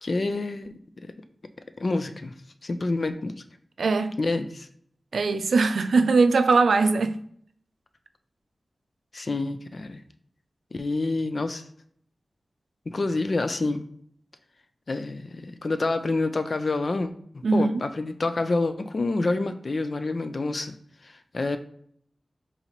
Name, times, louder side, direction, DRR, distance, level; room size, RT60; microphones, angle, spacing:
voice 1, 0.0-0.7 1.0-1.1 1.8-2.3 2.6-3.3 4.2-4.7 9.1-10.0 10.7-11.6 12.9-13.9 14.9-17.1 17.3-20.8 21.0-21.6, left 2 dB, 50° left, 0.4 m, -27 dB
voice 2, 3.8-4.2 5.1-7.2 17.4-17.8, right 4 dB, 85° right, 0.3 m, -21 dB
4.1 x 3.9 x 3.0 m
wide cardioid pair, 95°, 0 cm